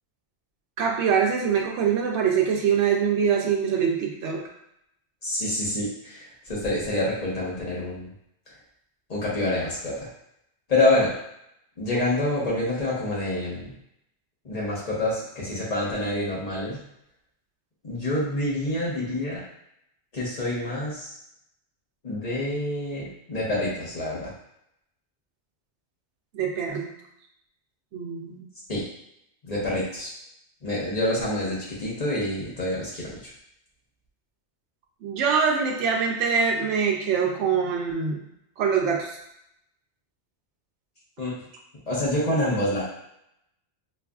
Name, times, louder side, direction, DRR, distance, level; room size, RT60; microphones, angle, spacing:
voice 1, 0.8-4.4 26.3-26.9 27.9-28.4 35.0-38.3 38.6-39.2, right 6 dB, 90° right, 0 dB, 0.9 m, -24 dB
voice 2, 5.2-8.1 9.1-10.1 10.7-11.1 11.8-13.7 14.4-16.8 17.8-19.4 20.1-21.1 22.0-24.3 28.7-28.8 29.4-30.1 30.6-33.3 41.2-41.3 41.9-42.8, left 1 dB, 35° left, -6 dB, 1.2 m, -27 dB
4.6 x 2.5 x 2.3 m, 0.77 s
omnidirectional pair, 1.1 m